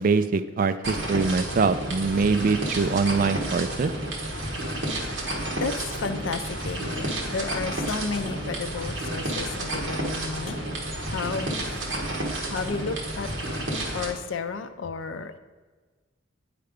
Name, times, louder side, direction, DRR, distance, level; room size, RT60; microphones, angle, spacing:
voice 1, 0.0-3.9, right 4 dB, 45° right, 0.3 m, -23 dB
sound 1, 0.8-14.1, right 1 dB, 70° right, 1.3 m, -31 dB
voice 2, 5.5-11.8 12.5-13.3 13.9-15.4, left 4 dB, 75° left, 0.5 m, -32 dB
9.3 x 3.4 x 5.0 m
head